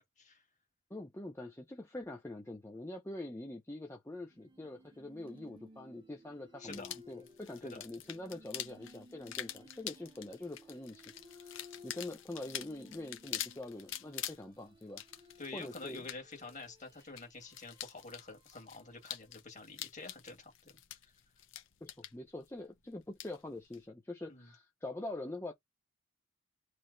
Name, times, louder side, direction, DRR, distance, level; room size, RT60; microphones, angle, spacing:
voice 1, 0.9-15.0 15.5-16.1 21.8-25.5, left 2 dB, 15° left, 0.5 m, -44 dB
sound 1, 4.3-19.4, left 2 dB, 25° right, 0.7 m, -59 dB
sound 2, 6.7-23.9, left 11 dB, 70° left, 0.7 m, -47 dB
voice 2, 15.4-20.8 24.3-24.5, left 3 dB, 35° left, 1.6 m, -48 dB
3.2 x 2.9 x 3.8 m
head